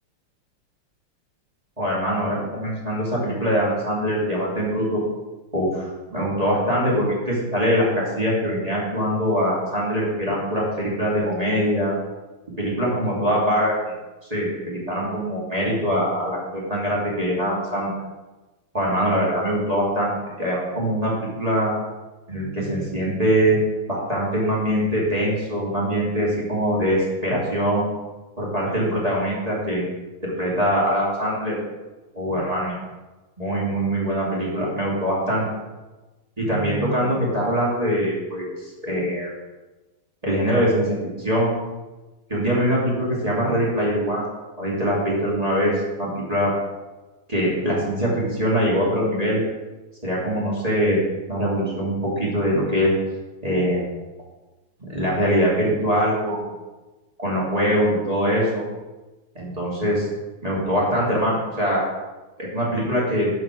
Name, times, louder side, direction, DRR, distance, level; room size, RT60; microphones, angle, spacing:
voice 1, 1.8-5.0 5.5-11.9 12.6-13.7 14.3-17.9 18.7-21.7 22.3-23.6 23.9-27.9 28.4-29.8 30.2-31.5 32.1-32.8 33.4-35.5 36.4-39.3 40.2-41.5 42.3-44.3 44.6-46.5 47.3-49.4 50.0-51.0 51.3-52.9 53.4-53.8 54.8-56.5 57.2-58.6 59.3-60.1 60.4-61.8 62.4-63.3, equal, 15° right, -6 dB, 2.5 m, -23 dB
11.5 x 4.8 x 6.0 m, 1.1 s
omnidirectional pair, 2.4 m